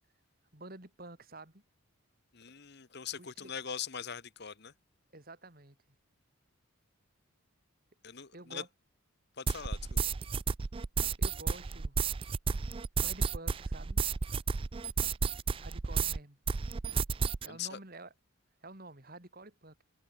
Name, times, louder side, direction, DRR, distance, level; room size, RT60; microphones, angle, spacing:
voice 1, 0.5-1.6 3.2-3.5 5.1-5.8 8.3-8.7 11.2-12.0 13.0-14.0 15.6-16.4 17.4-18.1 18.6-19.8, right 2 dB, 45° right, 3.2 m, -49 dB
voice 2, 2.3-4.7 8.0-8.6 9.4-10.0 17.5-17.8, left 7 dB, 50° left, 1.2 m, -41 dB
sound 1, 9.5-16.2 16.5-17.5, right 5 dB, 25° right, 0.3 m, -32 dB
head